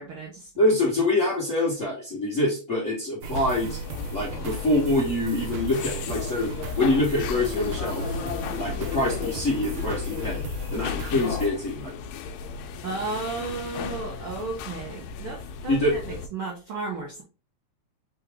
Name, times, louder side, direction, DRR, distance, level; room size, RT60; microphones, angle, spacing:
voice 1, 0.0-0.5 12.8-17.2, right 3 dB, 65° right, -1 dB, 1.3 m, -34 dB
voice 2, 0.6-3.8 4.1-8.2 8.6-10.4 10.7-11.9 15.7-15.9, left 1 dB, 40° left, -5 dB, 1.2 m, -25 dB
sound 1, 3.2-11.5, equal, 85° right, 2.0 m, -35 dB
sound 2, 3.3-16.3, left 5 dB, 80° left, 1.8 m, -35 dB
4.7 x 3.1 x 3.5 m, 0.33 s
omnidirectional pair, 3.3 m